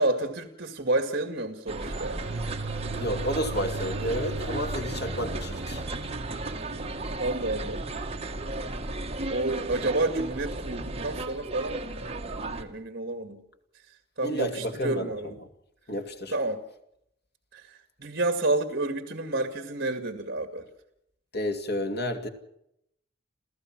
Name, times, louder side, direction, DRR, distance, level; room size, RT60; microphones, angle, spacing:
voice 1, 0.0-2.2 7.2-7.8 9.3-13.4 14.2-15.4 16.3-16.6 17.5-20.7, right 2 dB, 55° right, 8 dB, 2.1 m, -30 dB
sound 1, 1.7-12.6, right 2 dB, 35° right, 1.7 m, -34 dB
sound 2, 1.8-7.7, right 3 dB, 85° right, 1.1 m, -38 dB
voice 2, 2.9-5.8 14.2-15.3 15.9-16.3 21.3-22.3, equal, 60° left, 6 dB, 2.7 m, -31 dB
29.0 x 15.0 x 6.1 m, 0.77 s
head